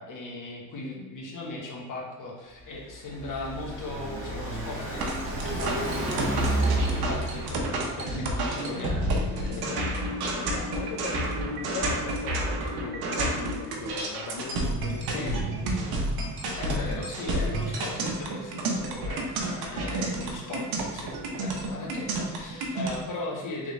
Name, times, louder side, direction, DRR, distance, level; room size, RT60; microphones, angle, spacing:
voice 1, 0.0-7.6 8.0-9.1 9.4-9.8 14.8-15.5 16.6-20.7 20.9-23.7, left 2 dB, 55° left, -2 dB, 1.2 m, -38 dB
Car passing by, 2.6-8.2, right 2 dB, 35° right, 1.4 m, -30 dB
sound 1, 5.0-23.0, right 2 dB, 85° right, 0.8 m, -30 dB
sound 2, 8.7-13.0, left 7 dB, 15° left, 0.9 m, -42 dB
voice 2, 9.4-16.1 19.7-20.3, left 5 dB, 75° left, 0 dB, 0.6 m, -39 dB
3.6 x 3.5 x 3.1 m, 1.1 s
cardioid pair, 100°, 37 cm